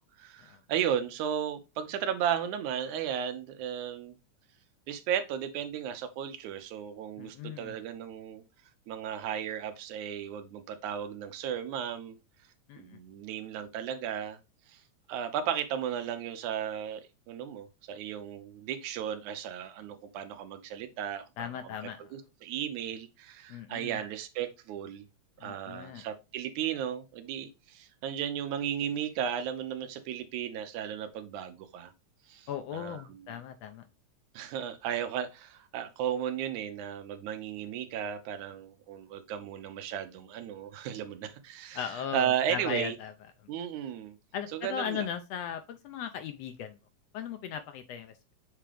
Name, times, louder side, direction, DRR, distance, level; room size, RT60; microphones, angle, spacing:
voice 1, 0.2-4.2 4.9-8.4 8.9-12.2 12.8-14.4 14.7-14.8 15.1-21.8 22.1-25.1 25.4-31.9 32.3-33.4 34.3-43.0 43.5-44.2 44.5-45.1, right 9 dB, 90° right, 2.2 m, -35 dB
voice 2, 7.2-7.7 12.7-13.0 21.4-22.1 23.5-24.0 25.4-26.0 32.5-33.9 41.7-43.1 44.3-46.8 47.1-48.3, left 8 dB, 75° left, 1.6 m, -38 dB
7.6 x 3.7 x 3.3 m
omnidirectional pair, 3.3 m